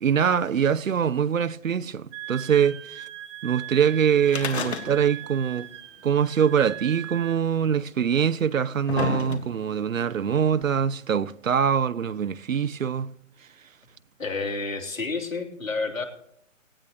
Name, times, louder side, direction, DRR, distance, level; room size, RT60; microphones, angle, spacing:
voice 1, 0.0-3.1 3.4-5.7 6.0-13.1, right 8 dB, 80° right, 0.7 m, -23 dB
Wind instrument woodwind instrument, 2.1-7.4, right 13 dB, 20° right, 0.9 m, -40 dB
sound 1, 4.3-5.3 5.6-5.7 6.6-6.7 7.6-7.7 8.4-9.8 10.6-10.7, left 6 dB, 55° left, 1.7 m, -31 dB
voice 2, 14.2-16.0, left 3 dB, 85° left, 3.4 m, -30 dB
17.5 x 17.5 x 3.0 m
figure-of-eight pair, 140°, 39 cm